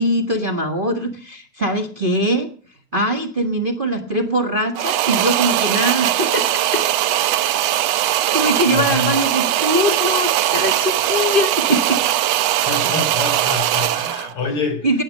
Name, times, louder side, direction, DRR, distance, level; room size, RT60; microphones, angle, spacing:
voice 1, 0.0-2.5 2.9-6.9 8.3-12.0 12.8-12.9 14.8-15.0, equal, 40° right, 4 dB, 0.7 m, -21 dB
sound 1, 4.8-14.3, right 13 dB, 80° right, 1.4 m, -20 dB
voice 2, 8.7-9.1 12.7-14.9, left 4 dB, 40° left, 8 dB, 3.8 m, -26 dB
18.5 x 8.0 x 6.5 m, 0.42 s
omnidirectional pair, 3.8 m